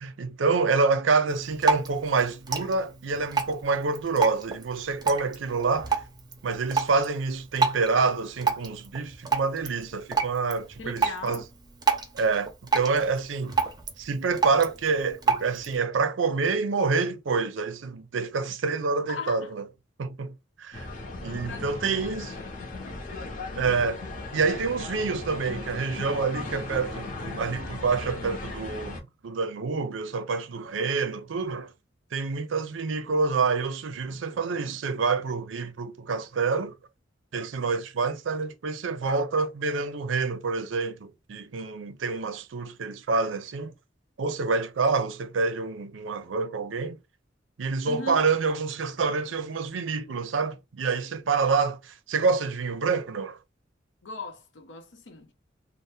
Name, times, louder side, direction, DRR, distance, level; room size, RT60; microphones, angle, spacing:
voice 1, 0.0-6.0 6.4-11.4 12.1-13.6 14.0-19.6 20.0-20.9 21.2-22.3 23.5-24.0 24.3-31.7 32.1-36.7 37.3-43.7 44.2-47.0 47.6-53.4, right 4 dB, 85° right, 0.5 m, -27 dB
Drip, 1.3-15.8, right 5 dB, 20° right, 0.6 m, -31 dB
voice 2, 10.8-11.4 19.1-19.5 21.4-23.0 23.5-23.7 47.9-48.3 54.0-55.3, left 3 dB, 80° left, 0.8 m, -40 dB
sound 1, 20.7-29.0, left 2 dB, 45° left, 0.8 m, -37 dB
2.7 x 2.0 x 3.3 m
head